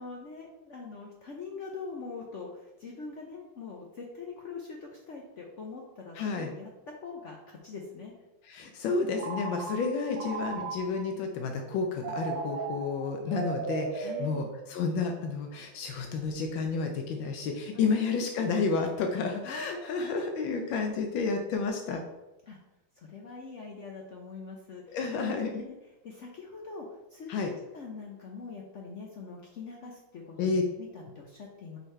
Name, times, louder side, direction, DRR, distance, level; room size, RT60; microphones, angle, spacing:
voice 1, 0.0-8.1 14.0-14.5 17.7-18.3 19.4-20.6 22.5-22.6 23.0-25.1 25.5-25.8 26.0-31.8, left 4 dB, 65° left, 0 dB, 0.7 m, -43 dB
voice 2, 6.2-6.5 8.5-22.0 24.9-25.6 27.3-27.5 30.4-30.6, left 4 dB, 80° left, 3 dB, 1.4 m, -31 dB
Telephone, 9.2-11.2 12.0-15.1, right 4 dB, 70° right, 1.4 m, -37 dB
5.4 x 4.0 x 4.3 m, 1.0 s
omnidirectional pair, 2.1 m